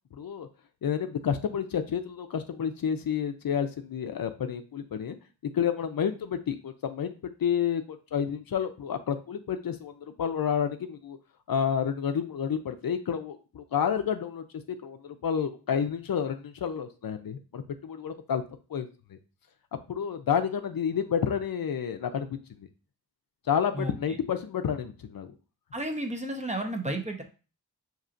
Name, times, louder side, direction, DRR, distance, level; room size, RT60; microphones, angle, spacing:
voice 1, 0.1-0.5 0.8-5.2 5.5-11.2 11.5-14.4 14.8-18.4 18.7-19.2 19.9-22.7 23.5-25.3, left 8 dB, 70° left, 8 dB, 0.5 m, -30 dB
voice 2, 25.7-27.2, right 1 dB, 20° right, 3 dB, 0.8 m, -32 dB
5.5 x 2.9 x 2.5 m, 0.34 s
cardioid pair, 50°, 37 cm